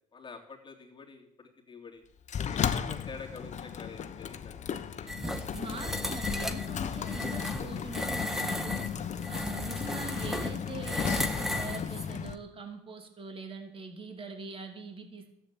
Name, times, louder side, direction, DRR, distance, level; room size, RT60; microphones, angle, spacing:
voice 1, 0.1-2.0 2.5-5.1 7.3-7.4, left 4 dB, 30° left, 1 dB, 3.2 m, -47 dB
Sliding door, 2.3-12.4, left 8 dB, 45° left, 1.0 m, -35 dB
sound 1, 5.1-12.1, left 1 dB, ahead, 1.5 m, -35 dB
voice 2, 5.2-8.9 9.3-15.3, right 4 dB, 30° right, 4 dB, 2.9 m, -43 dB
13.5 x 8.5 x 9.0 m, 0.75 s
cardioid pair, 110°, 17 cm